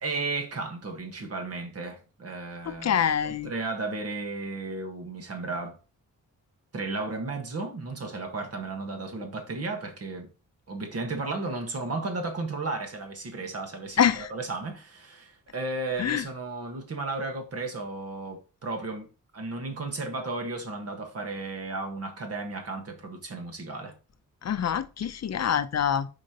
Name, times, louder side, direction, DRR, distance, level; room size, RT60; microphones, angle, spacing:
voice 1, 0.0-5.8 6.7-10.3 10.7-14.0 14.3-19.1 19.3-23.9, right 3 dB, 50° right, 1.5 m, -34 dB
voice 2, 2.6-3.5 14.0-14.3 16.0-16.2 24.4-26.1, left 8 dB, 55° left, 0.6 m, -25 dB
8.3 x 5.1 x 2.9 m
wide cardioid pair, 155°, 32 cm